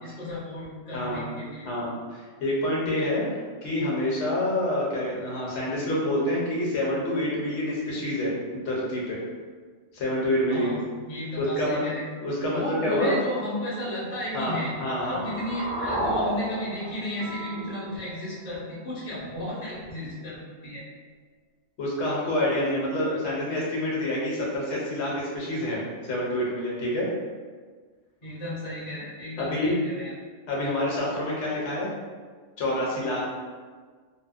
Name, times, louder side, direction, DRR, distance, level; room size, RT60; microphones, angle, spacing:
voice 1, 0.0-1.7 10.5-12.1 12.3-14.7 15.1-20.8 28.2-30.1, left 1 dB, 35° left, -8 dB, 0.7 m, -34 dB
voice 2, 0.9-1.2 1.6-9.2 9.9-10.7 11.4-11.8 12.2-13.1 14.3-15.2 21.8-25.8 26.1-27.1 29.4-29.8 30.5-31.9 32.6-33.2, left 1 dB, 70° left, -5 dB, 1.0 m, -27 dB
sound 1, 14.3-18.3, right 1 dB, 80° right, 1.0 m, -33 dB
Guitar, 17.2-19.6, right 2 dB, 40° right, 0.8 m, -45 dB
2.7 x 2.0 x 2.4 m, 1.5 s
omnidirectional pair, 1.3 m